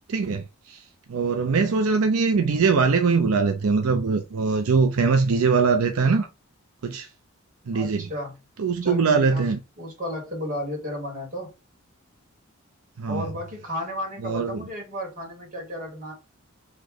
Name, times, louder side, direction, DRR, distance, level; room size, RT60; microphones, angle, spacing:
voice 1, 0.1-0.8 1.1-6.3 6.8-7.1 7.7-8.1 8.6-9.6 13.0-13.3 14.2-14.6, right 4 dB, 80° right, 0.5 m, -22 dB
voice 2, 7.7-8.4 8.8-9.4 9.8-11.5 13.1-16.1, left 1 dB, 35° right, 1.8 m, -33 dB
3.2 x 2.9 x 3.8 m
head